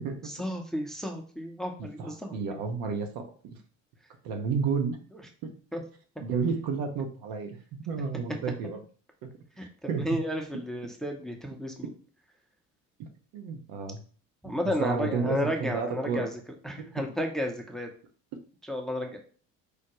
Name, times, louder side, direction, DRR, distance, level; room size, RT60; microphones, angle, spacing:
voice 1, 0.4-2.4 5.7-5.8 9.6-11.9 14.4-16.4 16.6-17.9 18.7-19.2, equal, ahead, 2 dB, 0.7 m, -32 dB
voice 2, 1.8-3.6 4.2-5.0 5.4-5.5 6.2-7.6 7.9-8.8 9.2-9.3 9.6-10.2 13.0-13.1 13.3-14.0 14.4-16.3 16.8-16.9, right 5 dB, 60° right, 4 dB, 0.8 m, -32 dB
4.7 x 2.1 x 3.0 m, 0.42 s
hypercardioid pair, 55°, 39 cm